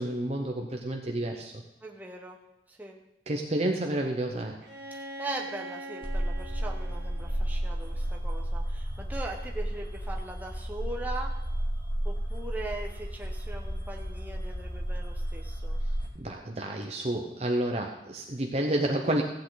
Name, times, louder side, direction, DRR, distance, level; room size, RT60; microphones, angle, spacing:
voice 1, 0.0-1.5 3.3-4.6 16.1-19.2, right 1 dB, 35° right, 2 dB, 0.9 m, -30 dB
voice 2, 1.8-2.4 2.7-3.0 4.9-11.3 12.0-15.8, right 2 dB, 10° right, -1 dB, 1.0 m, -40 dB
Bowed string instrument, 4.6-8.4, right 1 dB, 65° right, 1.7 m, -43 dB
sound 1, 6.0-16.1, equal, 30° left, 1.7 m, -32 dB
15.5 x 8.6 x 4.0 m, 0.92 s
head